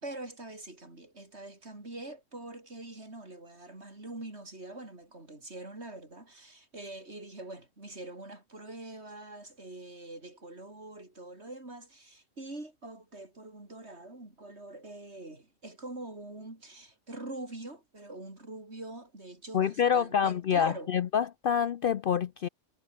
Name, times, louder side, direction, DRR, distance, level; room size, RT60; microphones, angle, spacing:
voice 1, 0.0-20.9, right 2 dB, 60° right, 4.9 m, -44 dB
voice 2, 19.5-22.5, left 8 dB, 55° left, 0.7 m, -27 dB
omnidirectional pair, 1.3 m